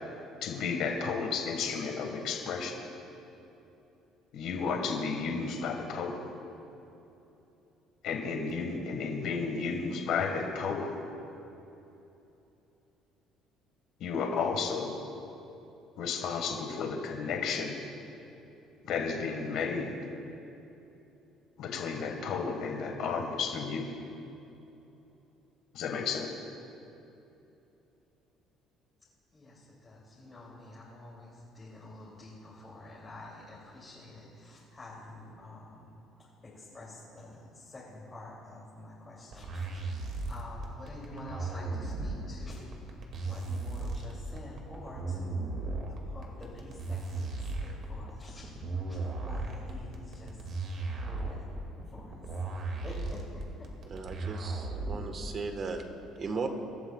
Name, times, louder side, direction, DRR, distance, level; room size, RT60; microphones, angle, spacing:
voice 1, 0.4-2.8 4.3-6.2 8.0-10.9 14.0-15.0 16.0-17.8 18.9-19.9 21.6-23.9 25.7-26.3, left 5 dB, 65° left, 2 dB, 1.5 m, -32 dB
voice 2, 29.3-35.9 36.2-45.5 45.9-48.5 48.9-50.4 50.9-51.5 51.9-52.2 52.8-53.7, left 1 dB, 20° left, -6 dB, 2.7 m, -48 dB
sound 1, 39.3-55.3, right 3 dB, 55° right, 2.0 m, -36 dB
voice 3, 53.9-55.8 56.2-56.5, right 4 dB, 40° right, 6 dB, 1.3 m, -36 dB
24.5 x 12.0 x 2.3 m, 2.9 s
cardioid pair, 130°, 0 cm